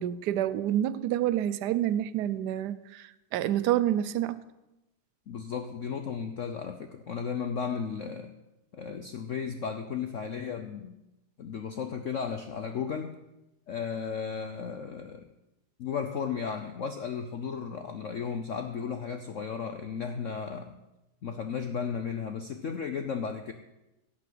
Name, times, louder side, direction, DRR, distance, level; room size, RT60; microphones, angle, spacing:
voice 1, 0.0-3.0 3.3-4.4, right 12 dB, 70° right, 15 dB, 1.0 m, -28 dB
voice 2, 5.3-8.3 8.7-11.0 11.4-13.2 13.7-15.3 15.8-20.8 21.2-23.5, left 6 dB, 80° left, 7 dB, 0.6 m, -34 dB
16.5 x 5.9 x 7.7 m, 0.96 s
omnidirectional pair, 2.3 m